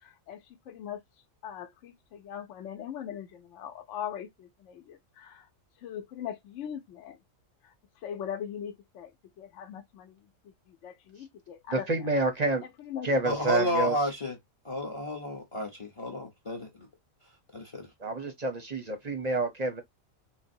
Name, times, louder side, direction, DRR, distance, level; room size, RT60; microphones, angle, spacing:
voice 1, 0.7-1.0 1.4-5.4 5.8-7.2 8.0-9.1 9.4-10.2 10.8-11.8 12.8-13.1 13.5-13.7, left 9 dB, 70° left, 0.9 m, -40 dB
voice 2, 11.7-12.6 13.0-13.9 18.0-19.8, right 2 dB, 40° right, 0.6 m, -28 dB
voice 3, 13.2-14.4 14.6-16.9 17.5-17.9, left 1 dB, 30° left, 0.7 m, -31 dB
3.9 x 2.1 x 2.6 m
omnidirectional pair, 1.4 m